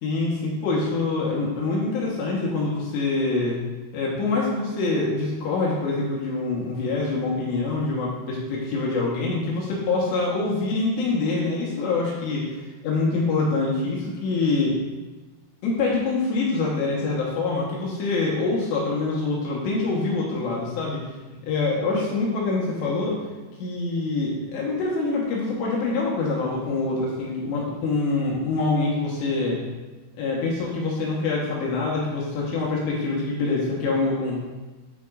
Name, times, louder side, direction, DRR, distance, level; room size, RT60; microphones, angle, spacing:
voice 1, 0.0-3.6 3.9-12.5 12.8-14.7 15.6-21.0 21.5-23.2 23.6-29.6 30.2-34.4, left 3 dB, 70° left, -4 dB, 3.0 m, -25 dB
11.5 x 5.2 x 2.5 m, 1.2 s
omnidirectional pair, 5.7 m